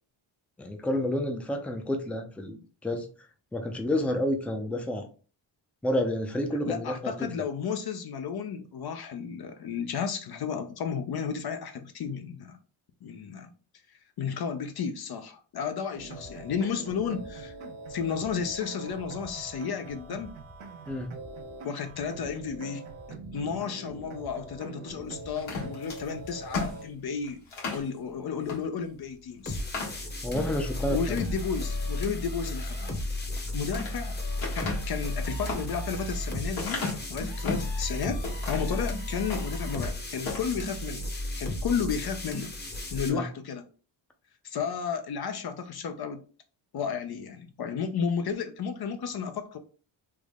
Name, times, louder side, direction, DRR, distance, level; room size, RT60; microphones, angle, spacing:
voice 1, 0.6-3.1 3.5-5.1 5.8-7.1 20.9-21.1 30.2-31.2 43.1-43.2, left 1 dB, 5° left, 0.5 m, -29 dB
voice 2, 6.7-12.6 13.0-13.5 14.2-17.5 17.9-20.3 21.6-27.4 27.7-29.6 30.9-33.0 33.5-34.2 34.5-41.1 41.4-42.5 42.9-43.6 44.4-46.2 46.7-49.6, left 6 dB, 55° left, 0.5 m, -33 dB
sound 1, 15.9-26.8, right 3 dB, 75° right, 0.8 m, -43 dB
sound 2, 25.4-27.9 28.4-28.6 29.0-29.1 29.5-30.5 31.0-31.4 33.2-34.0 34.4-37.7 38.2-38.8 39.2-39.9 40.2-40.5, left 4 dB, 80° left, 1.4 m, -35 dB
sound 3, 29.5-43.1, left 1 dB, 20° left, 0.8 m, -33 dB
3.4 x 2.0 x 3.5 m
cardioid pair, 80°, 47 cm